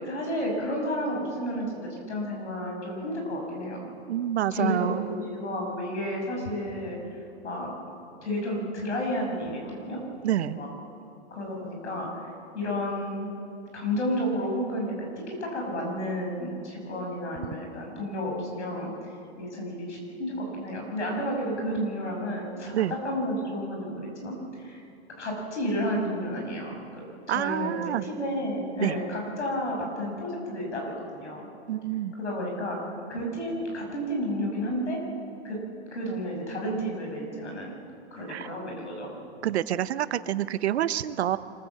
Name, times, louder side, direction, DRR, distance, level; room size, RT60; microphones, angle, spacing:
voice 1, 0.0-3.9 4.5-7.0 7.4-7.7 8.2-10.0 10.5-10.7 11.3-12.1 12.5-13.3 13.7-22.7 23.0-24.8 25.2-27.0 27.3-31.5 32.2-32.8 33.1-35.0 35.4-35.6 35.9-37.7 38.1-39.1, equal, 90° left, 0 dB, 6.6 m, -31 dB
voice 2, 4.1-5.1 10.2-10.6 22.7-22.9 27.3-28.0 28.8-29.0 31.7-32.1 38.3-38.5 39.4-41.4, right 12 dB, 70° right, 15 dB, 0.9 m, -27 dB
25.5 x 15.0 x 7.5 m, 2.6 s
hypercardioid pair, 135°, 34 cm